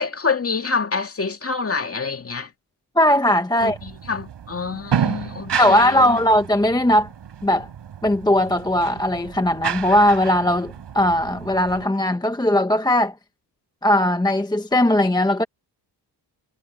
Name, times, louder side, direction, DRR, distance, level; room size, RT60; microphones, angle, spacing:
voice 1, 0.0-2.5 3.6-6.2, left 4 dB, 30° left, 2.3 m, -27 dB
voice 2, 3.0-3.8 5.6-7.1 7.4-7.7 8.0-13.1 13.8-15.4, left 1 dB, 10° left, 1.0 m, -18 dB
sound 1, 3.6-11.9, right 8 dB, 70° right, 4.4 m, -31 dB
cardioid pair, 105°, 43 cm